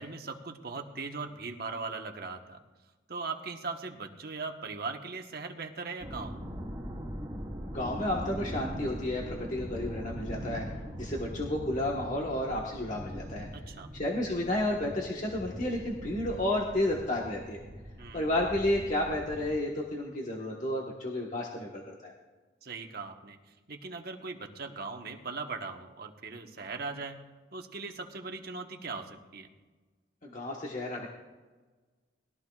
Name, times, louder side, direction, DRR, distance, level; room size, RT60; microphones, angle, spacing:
voice 1, 0.0-2.6 3.1-6.3 13.5-13.9 18.0-18.3 22.6-23.4 23.7-27.2 27.5-29.5, right 4 dB, 55° right, 4 dB, 1.2 m, -39 dB
sound 1, 6.0-19.5, equal, 15° right, 3.1 m, -41 dB
voice 2, 7.6-13.5 13.9-17.6 18.1-22.1 30.2-31.1, left 1 dB, 40° left, -2 dB, 1.4 m, -32 dB
21.0 x 13.5 x 2.4 m, 1.3 s
head